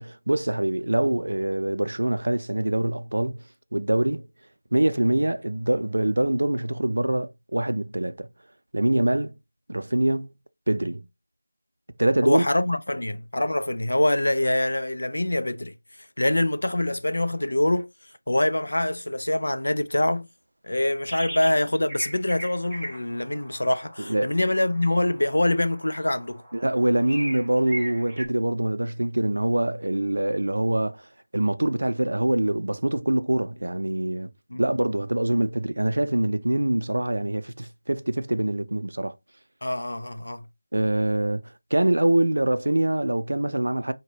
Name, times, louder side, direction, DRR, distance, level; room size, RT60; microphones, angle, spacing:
voice 1, 0.0-3.4 3.7-4.3 4.7-8.3 8.7-9.3 9.7-10.3 10.7-11.1 12.0-12.4 24.0-24.3 26.5-31.0 31.3-34.3 34.6-39.2 40.7-41.4 41.7-43.9, right 1 dB, 85° right, 0.4 m, -24 dB
voice 2, 12.2-15.7 16.2-17.9 18.3-20.3 20.7-26.4 34.5-34.6 39.6-40.4, left 1 dB, 80° left, 0.4 m, -24 dB
sound 1, 21.1-21.6 21.9-28.3, right 1 dB, 5° right, 0.5 m, -39 dB
3.9 x 2.1 x 3.2 m
figure-of-eight pair, 180°, 0 cm